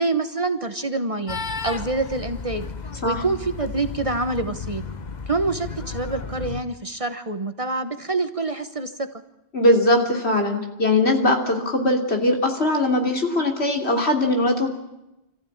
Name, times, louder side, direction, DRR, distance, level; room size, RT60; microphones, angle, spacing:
voice 1, 0.0-2.7 3.0-4.8 5.3-9.1, right 3 dB, 30° right, 8 dB, 1.2 m, -26 dB
sound 1, 1.3-6.6, left 5 dB, 40° left, 1.1 m, -33 dB
voice 2, 9.5-14.7, left 1 dB, 70° left, 2 dB, 3.4 m, -20 dB
26.5 x 15.0 x 8.8 m, 0.91 s
omnidirectional pair, 1.1 m